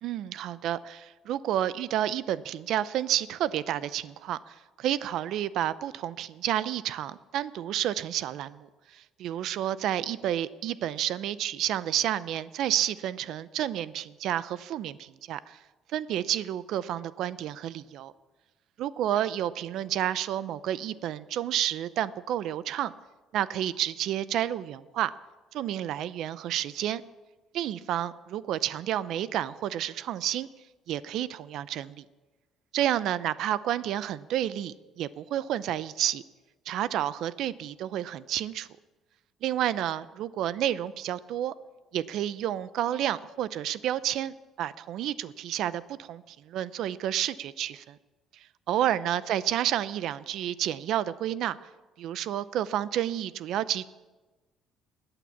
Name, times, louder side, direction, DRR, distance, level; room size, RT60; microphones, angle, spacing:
voice 1, 0.0-15.6 15.9-18.1 18.8-22.9 23.3-25.1 25.5-27.0 27.5-30.5 30.9-32.0 32.7-36.2 36.7-38.7 39.4-41.5 41.9-48.0 48.7-51.6 52.0-53.8, right 11 dB, 60° right, 16 dB, 0.6 m, -30 dB
20.5 x 9.0 x 7.2 m, 1.2 s
cardioid pair, 160°, 0 cm